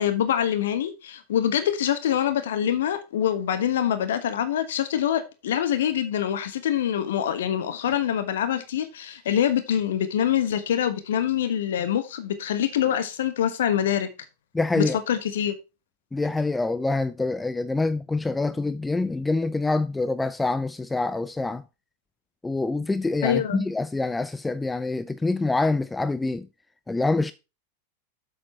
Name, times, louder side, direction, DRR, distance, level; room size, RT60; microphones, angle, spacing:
voice 1, 0.0-14.1 14.7-15.5 23.2-23.6, left 10 dB, 60° left, 1.2 m, -25 dB
voice 2, 14.5-15.0 16.1-21.6 22.4-26.5 26.9-27.3, left 3 dB, 10° left, 0.4 m, -26 dB
7.6 x 6.3 x 4.3 m
figure-of-eight pair, 90°, 0 cm